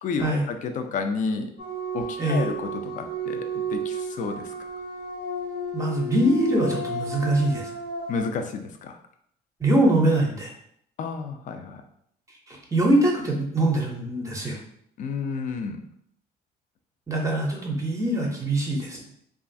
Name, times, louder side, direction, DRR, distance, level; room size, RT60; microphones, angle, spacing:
voice 1, 0.0-1.5 1.9-4.5 8.1-9.0 11.0-11.8 15.0-15.8, left 4 dB, 50° left, 6 dB, 0.4 m, -31 dB
sound 1, 1.6-8.2, right 2 dB, 80° left, 1.0 m, -32 dB
voice 2, 5.7-7.7 9.6-10.5 12.5-14.6 17.1-19.0, right 1 dB, 20° right, -1 dB, 0.6 m, -23 dB
3.0 x 2.4 x 2.6 m, 0.69 s
cardioid pair, 110°, 17 cm